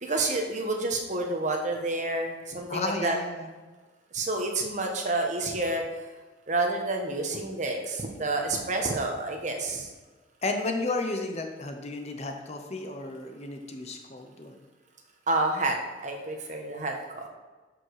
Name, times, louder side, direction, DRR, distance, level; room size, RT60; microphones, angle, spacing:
voice 1, 0.0-3.2 4.1-5.8 6.5-9.9 15.3-15.8 16.0-17.2, right 2 dB, 40° right, 2 dB, 1.4 m, -29 dB
voice 2, 2.7-3.5 10.4-14.6, left 2 dB, 35° left, 4 dB, 1.0 m, -33 dB
13.0 x 5.2 x 4.9 m, 1.3 s
head